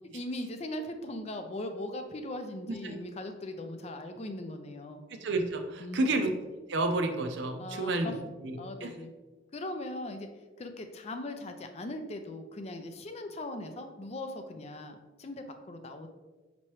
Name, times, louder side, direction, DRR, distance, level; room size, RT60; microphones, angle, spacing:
voice 1, 0.1-5.0 5.8-6.2 7.6-8.1 8.6-9.1 9.5-16.1, left 1 dB, 35° left, 7 dB, 0.4 m, -39 dB
voice 2, 5.2-6.3 6.7-8.1 8.4-8.9, right 2 dB, 65° right, 5 dB, 0.5 m, -30 dB
5.6 x 3.0 x 3.0 m, 1.2 s
head